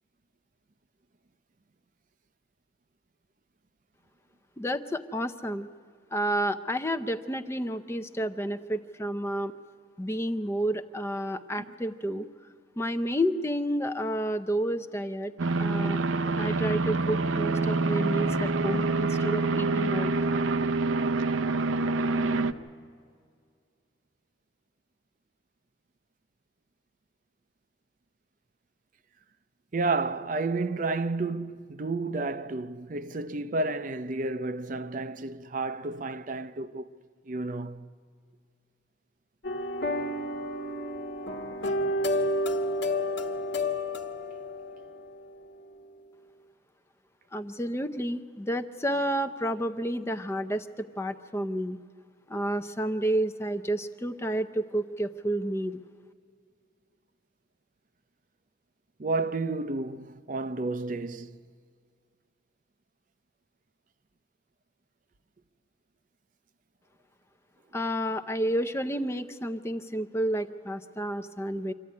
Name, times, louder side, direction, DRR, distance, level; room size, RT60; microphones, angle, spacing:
voice 1, 4.6-5.7 6.1-9.5 10.0-12.3 12.8-15.3 15.6-16.0 16.4-20.1 47.3-51.8 52.3-55.8 67.7-71.7, equal, 15° left, 0.6 m, -30 dB
sound 1, 15.4-22.5, right 3 dB, 90° right, 0.7 m, -26 dB
voice 2, 29.7-36.9 37.3-37.9 59.0-61.4, right 3 dB, 40° right, 0.5 m, -31 dB
sound 2, 39.4-45.4, left 1 dB, 60° left, 1.2 m, -30 dB
25.5 x 14.0 x 9.5 m
head